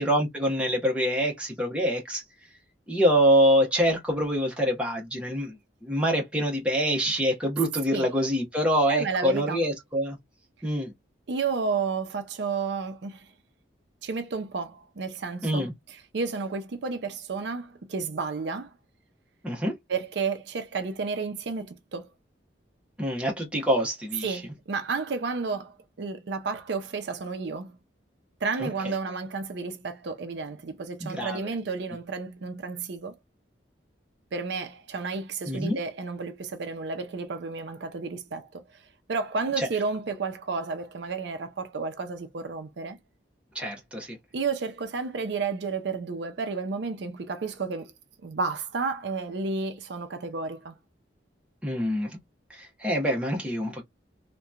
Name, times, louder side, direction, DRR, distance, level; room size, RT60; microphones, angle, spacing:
voice 1, 0.0-2.2 2.9-5.6 5.8-10.2 10.6-10.9 15.4-15.7 19.4-19.7 23.0-24.4 28.6-28.7 31.0-31.4 35.5-35.8 39.6-39.7 43.5-44.2 51.6-52.2 52.5-53.8, equal, 5° right, 0.8 m, -25 dB
voice 2, 8.9-9.6 11.3-13.3 14.0-18.7 19.9-22.1 24.2-27.8 28.4-33.1 34.3-38.8 39.1-43.0 44.3-47.9 48.2-50.8, right 4 dB, 65° right, 0.5 m, -32 dB
2.8 x 2.2 x 2.3 m
head